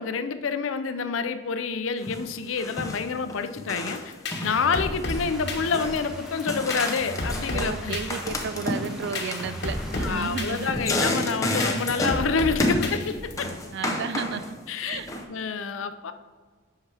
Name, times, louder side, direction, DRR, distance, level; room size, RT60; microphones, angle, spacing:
voice 1, 0.0-4.1 4.4-8.0 10.0-13.5 14.7-15.0 15.3-16.1, left 5 dB, 80° left, 10 dB, 0.5 m, -28 dB
sound 1, 2.0-2.3 2.6-4.0 4.3-5.3 5.5-6.1 6.5-7.8 8.1-12.3 12.6-13.0 13.4-14.5 14.9-15.2, left 1 dB, 15° left, 0.8 m, -30 dB
sound 2, 3.9-13.6, left 2 dB, 60° left, 1.1 m, -33 dB
sound 3, 5.1-10.7, equal, 5° right, 1.1 m, -42 dB
voice 2, 7.5-10.7 13.7-14.6 14.8-15.1, right 6 dB, 60° right, 13 dB, 0.4 m, -33 dB
8.1 x 5.8 x 3.4 m, 1.5 s
head